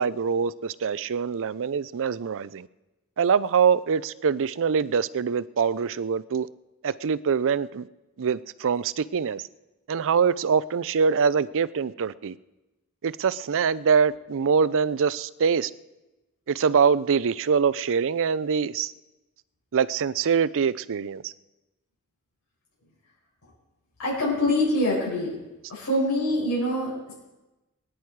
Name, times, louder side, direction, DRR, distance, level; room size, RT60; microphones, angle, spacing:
voice 1, 0.0-2.7 3.2-6.5 6.8-7.8 8.2-9.4 9.9-12.3 13.0-15.7 16.5-18.9 19.7-21.3, right 6 dB, 60° right, 18 dB, 0.5 m, -24 dB
voice 2, 24.0-25.4 25.7-27.1, left 1 dB, 70° left, -7 dB, 6.8 m, -25 dB
23.0 x 10.0 x 4.7 m, 1.1 s
head